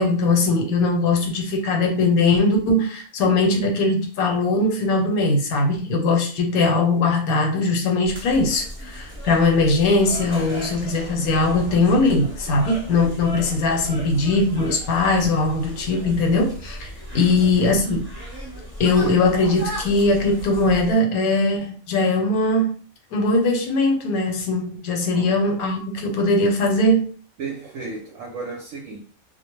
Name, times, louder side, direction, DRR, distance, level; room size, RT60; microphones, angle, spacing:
voice 1, 0.0-16.9 17.1-18.0 18.8-22.7 23.1-27.1, left 2 dB, 80° left, 1.1 m, -20 dB
sound 1, 8.0-20.9, equal, 10° right, 0.8 m, -36 dB
voice 2, 17.1-17.5 25.1-25.4 27.4-29.0, right 4 dB, 70° right, 0.9 m, -34 dB
2.3 x 2.1 x 2.9 m
omnidirectional pair, 1.5 m